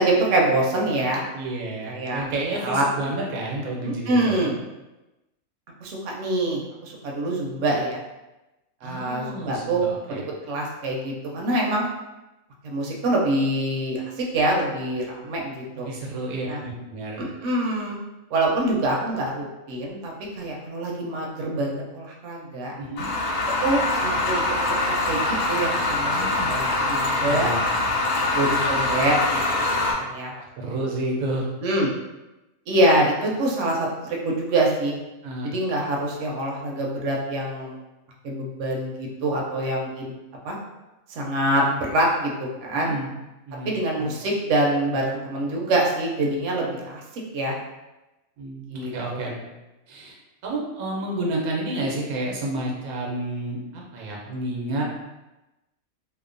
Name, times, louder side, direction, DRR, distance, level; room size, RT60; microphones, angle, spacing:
voice 1, 0.0-1.2 1.9-2.2 2.6-2.8 3.8-4.5 5.8-8.0 8.8-9.9 10.4-11.9 12.6-15.9 16.5-16.6 17.2-18.0 18.3-22.7 23.6-24.4 24.9-27.5 28.3-29.2 29.7-30.3 31.6-31.9 32.7-34.9 35.4-37.8 38.2-40.1 40.4-40.6 41.1-42.9 43.7-47.6 48.7-49.3, right 1 dB, 65° right, -1 dB, 0.8 m, -25 dB
voice 2, 1.3-4.5 8.8-10.2 15.7-17.3 22.8-23.1 26.1-26.5 27.3-27.6 30.3-31.5 35.2-35.5 42.7-43.1 43.5-43.7 44.0-44.1 48.4-49.3 49.9-50.2 50.4-54.8, right 2 dB, 90° right, -2 dB, 1.1 m, -30 dB
sound 1, 23.0-29.9, left 2 dB, 75° left, 0.9 m, -24 dB
2.8 x 2.0 x 2.5 m, 1.0 s
omnidirectional pair, 1.5 m